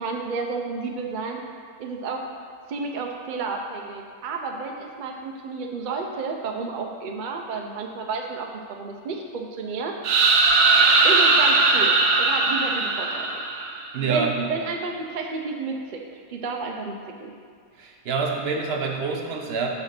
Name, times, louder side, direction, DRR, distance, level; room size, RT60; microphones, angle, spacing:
voice 1, 0.0-1.4 1.8-2.2 2.7-10.0 11.0-13.4 14.0-17.3, right 4 dB, 70° right, 2 dB, 0.4 m, -31 dB
sound 1, 10.0-13.9, right 3 dB, 85° right, 1.2 m, -19 dB
voice 2, 13.9-14.5 17.8-19.7, right 5 dB, 50° right, 1 dB, 0.8 m, -26 dB
7.0 x 3.8 x 5.9 m, 2.1 s
omnidirectional pair, 1.6 m